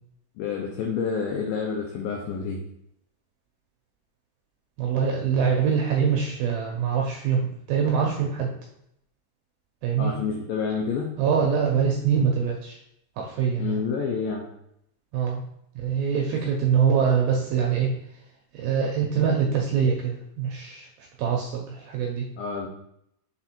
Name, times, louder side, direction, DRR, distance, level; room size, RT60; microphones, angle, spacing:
voice 1, 0.4-2.6 10.0-11.1 13.6-14.5 22.4-22.7, left 5 dB, 85° left, -1 dB, 2.1 m, -28 dB
voice 2, 4.8-7.4 7.7-8.5 9.8-10.1 11.2-12.8 13.2-13.8 15.1-15.4 15.8-17.9 18.5-20.9 21.2-22.3, right 7 dB, 80° right, 0 dB, 2.2 m, -24 dB
6.0 x 4.2 x 4.4 m, 0.77 s
omnidirectional pair, 5.1 m